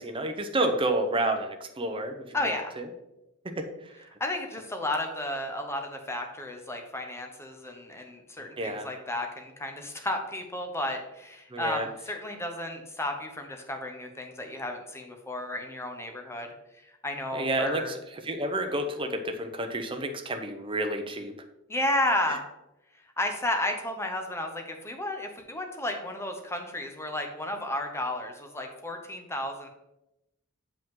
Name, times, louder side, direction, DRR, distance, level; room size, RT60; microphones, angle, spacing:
voice 1, 0.0-2.2 2.4-2.5 3.4-3.7 8.6-8.9 11.5-11.9 17.3-18.0 18.2-21.3, right 1 dB, 25° right, 5 dB, 0.7 m, -29 dB
voice 2, 2.3-2.7 4.2-16.5 17.0-17.9 21.7-22.4 23.2-29.7, left 1 dB, 10° left, 4 dB, 0.9 m, -32 dB
7.4 x 5.2 x 3.7 m, 0.91 s
head